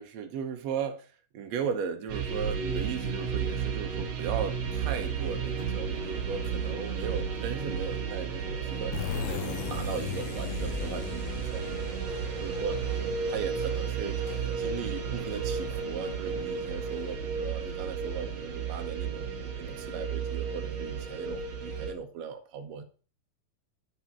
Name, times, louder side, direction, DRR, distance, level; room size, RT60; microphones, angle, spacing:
voice 1, 0.0-12.0 12.4-12.8 13.3-22.8, right 7 dB, 75° right, 6 dB, 1.5 m, -37 dB
sound 1, 2.1-21.9, right 6 dB, 55° right, 2.0 m, -33 dB
sound 2, 4.4-17.1, left 1 dB, 20° left, 0.9 m, -48 dB
sound 3, 8.9-14.4, left 8 dB, 90° left, 2.5 m, -38 dB
9.0 x 5.0 x 6.9 m, 0.39 s
omnidirectional pair, 4.4 m